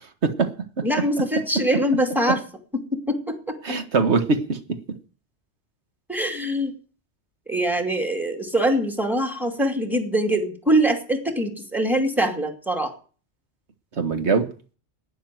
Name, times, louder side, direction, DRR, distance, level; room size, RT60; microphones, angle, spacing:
voice 1, 0.8-2.4 2.7-3.8 6.1-6.7 7.5-12.9, right 1 dB, ahead, 2.5 m, -23 dB
voice 2, 3.6-5.0 14.0-14.5, right 4 dB, 75° right, 1.8 m, -22 dB
12.0 x 9.9 x 7.7 m
omnidirectional pair, 1.2 m